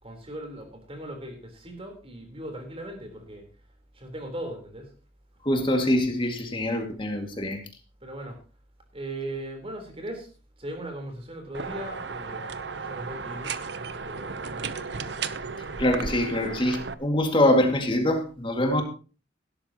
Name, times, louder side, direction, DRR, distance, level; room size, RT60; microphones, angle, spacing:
voice 1, 0.0-3.5 3.9-4.9 8.0-8.4 8.9-10.3 10.6-13.5 14.0-14.8, right 1 dB, 30° right, 4 dB, 3.9 m, -38 dB
voice 2, 5.5-7.6 15.8-18.8, left 1 dB, 25° left, 3 dB, 2.2 m, -24 dB
sound 1, 11.5-16.9, right 5 dB, 65° right, 0.8 m, -34 dB
17.0 x 12.5 x 3.0 m, 0.35 s
head